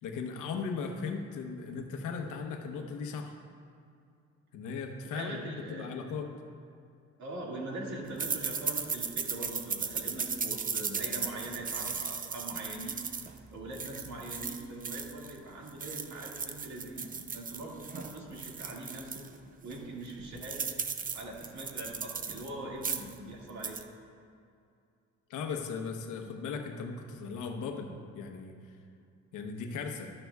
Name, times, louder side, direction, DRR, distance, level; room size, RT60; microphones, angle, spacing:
voice 1, 0.0-3.4 4.5-6.3 25.3-28.5 29.3-30.1, left 5 dB, 90° left, 4 dB, 1.0 m, -37 dB
voice 2, 5.0-5.9 7.2-13.0 13.5-17.0 17.3-19.3 19.6-20.7 21.1-23.8, right 2 dB, 65° right, -2 dB, 2.2 m, -42 dB
sound 1, 8.2-15.4 15.7-19.3 19.7-19.8 20.1-22.5 22.8-23.2 23.5-23.8, right 5 dB, 30° right, 0.5 m, -36 dB
12.0 x 10.5 x 2.4 m, 2.4 s
cardioid pair, 90°, 30 cm